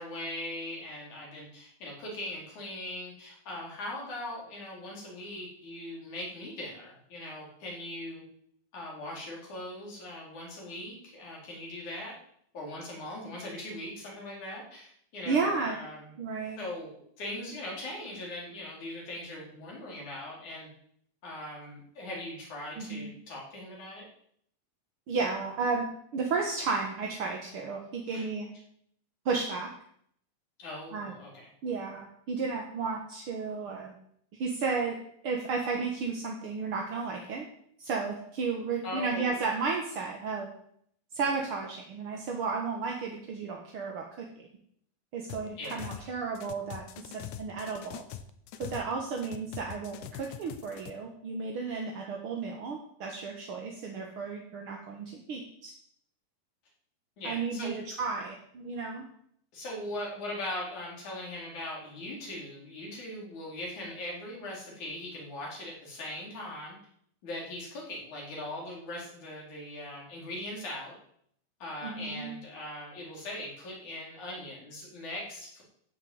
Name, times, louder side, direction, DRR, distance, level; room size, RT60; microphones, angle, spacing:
voice 1, 0.0-8.2 8.7-12.1 12.5-16.1 16.6-20.7 21.2-24.1 28.1-28.3 30.6-31.3 38.8-39.4 45.6-46.1 57.2-57.8 59.5-66.8 67.2-70.9 71.6-75.6, left 1 dB, 55° left, -3 dB, 5.6 m, -40 dB
voice 2, 15.3-15.7 16.2-16.6 22.8-23.1 25.1-25.9 26.1-28.5 29.2-29.7 30.9-31.1 31.6-33.9 34.4-35.0 35.2-37.4 37.8-40.5 41.1-44.0 44.4-44.5 45.1-46.8 47.1-48.0 48.6-55.7 57.2-59.0 71.8-72.3, right 4 dB, 50° right, 1 dB, 1.7 m, -33 dB
sound 1, 45.3-46.1 46.3-48.9 49.2-50.9, left 11 dB, 70° left, 2.1 m, -43 dB
14.5 x 7.0 x 8.0 m, 0.68 s
omnidirectional pair, 4.1 m